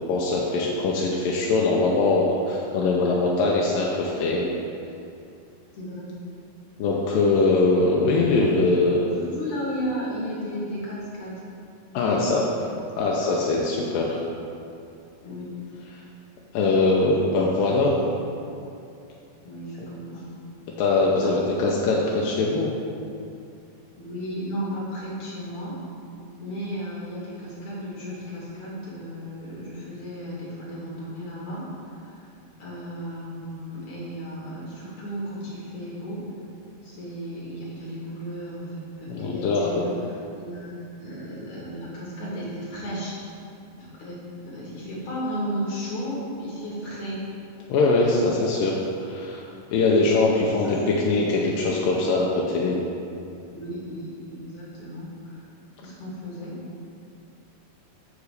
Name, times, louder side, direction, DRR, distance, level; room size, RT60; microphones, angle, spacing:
voice 1, 0.1-4.5 6.8-9.1 11.9-12.4 13.0-14.2 16.5-18.0 20.8-22.7 39.1-39.7 47.7-48.7 49.0-49.4 49.7-52.8, left 3 dB, 90° left, -3 dB, 2.4 m, -22 dB
voice 2, 5.7-6.1 9.1-11.4 12.1-12.5 15.2-15.5 17.3-18.3 19.4-20.2 21.2-21.9 24.0-25.8 26.4-32.2 32.6-36.2 36.8-39.9 40.3-43.3 43.8-47.2 50.9-51.5 53.5-55.5 55.8-56.6, equal, 60° left, -7 dB, 2.7 m, -34 dB
6.7 x 4.8 x 6.6 m, 2.6 s
omnidirectional pair, 3.9 m